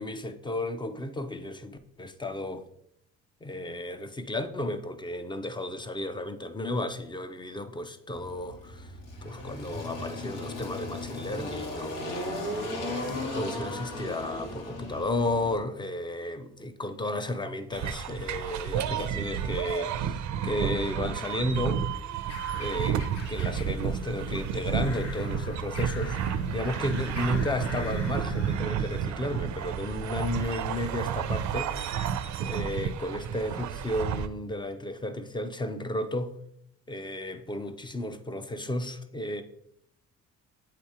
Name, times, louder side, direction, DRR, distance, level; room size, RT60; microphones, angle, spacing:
voice 1, 0.0-2.7 3.4-8.9 9.2-21.8 22.5-23.0 23.3-26.2 26.5-31.7 32.4-36.4 36.9-39.4, left 1 dB, 15° left, 0.5 m, -33 dB
Engine, 8.1-15.6, left 1 dB, 85° left, 1.5 m, -36 dB
sound 1, 17.7-34.3, right 8 dB, 70° right, 0.5 m, -31 dB
sound 2, 22.3-28.6, left 3 dB, 55° left, 0.7 m, -41 dB
8.1 x 2.9 x 4.8 m
cardioid pair, 90°, 30 cm